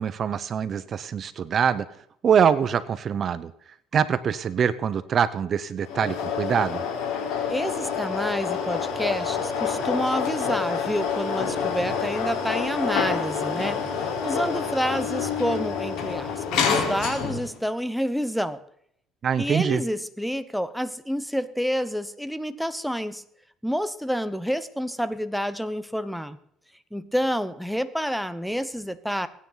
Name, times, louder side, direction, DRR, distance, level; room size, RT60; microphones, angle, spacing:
voice 1, 0.0-1.9 2.2-3.5 3.9-6.9 19.2-19.8, right 7 dB, 45° right, 14 dB, 0.8 m, -24 dB
sound 1, 5.8-17.6, left 6 dB, 80° left, 4.1 m, -27 dB
voice 2, 7.5-18.6 19.4-23.2 23.6-26.4 26.9-29.3, equal, ahead, 13 dB, 0.9 m, -28 dB
23.0 x 9.6 x 4.0 m, 0.70 s
cardioid pair, 110°, 0 cm